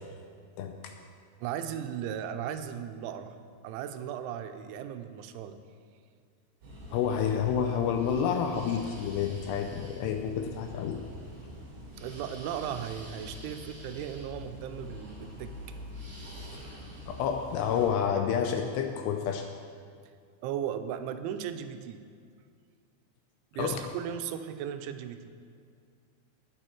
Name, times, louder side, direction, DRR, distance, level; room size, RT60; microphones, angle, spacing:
voice 1, 0.6-0.9 6.9-11.0 17.1-19.5 23.6-23.8, left 7 dB, 80° left, 4 dB, 2.5 m, -29 dB
voice 2, 1.4-3.4 3.6-5.6 12.0-15.8 20.4-22.0 23.5-25.4, right 9 dB, 85° right, 9 dB, 3.0 m, -36 dB
sound 1, 6.6-17.8, left 1 dB, 50° right, 4.9 m, -45 dB
20.0 x 7.1 x 4.5 m, 2.2 s
omnidirectional pair, 5.3 m